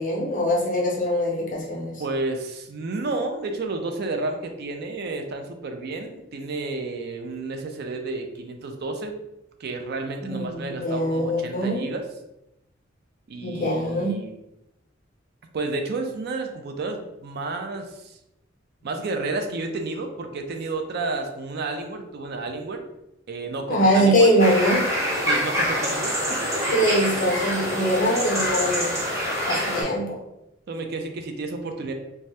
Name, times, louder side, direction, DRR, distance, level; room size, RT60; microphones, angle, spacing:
voice 1, 0.0-1.9 10.2-11.8 13.4-14.2 23.7-24.8 26.7-28.9 29.5-30.2, equal, 45° left, -2 dB, 0.7 m, -22 dB
voice 2, 2.0-9.2 9.6-12.0 13.3-14.3 15.5-18.2 18.8-22.8 23.3-24.3 25.3-26.6 30.7-31.9, right 3 dB, 55° right, 5 dB, 0.4 m, -31 dB
sound 1, 24.4-29.8, equal, 15° right, 0.7 m, -26 dB
2.7 x 2.2 x 3.2 m, 0.89 s
head